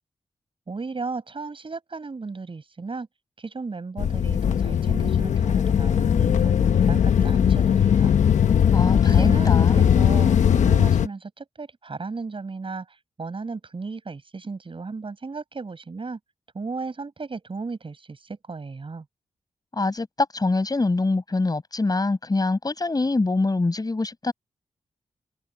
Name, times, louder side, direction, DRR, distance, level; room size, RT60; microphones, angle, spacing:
voice 1, 0.7-3.1 3.4-8.2 9.0-16.2 16.5-19.1, right 4 dB, 45° right, 7.6 m, -35 dB
sound 1, 4.0-11.1, left 8 dB, 80° left, 1.1 m, -19 dB
voice 2, 8.7-9.8 19.7-24.3, left 3 dB, 30° left, 5.9 m, -24 dB
open air
cardioid pair, 65°, 12 cm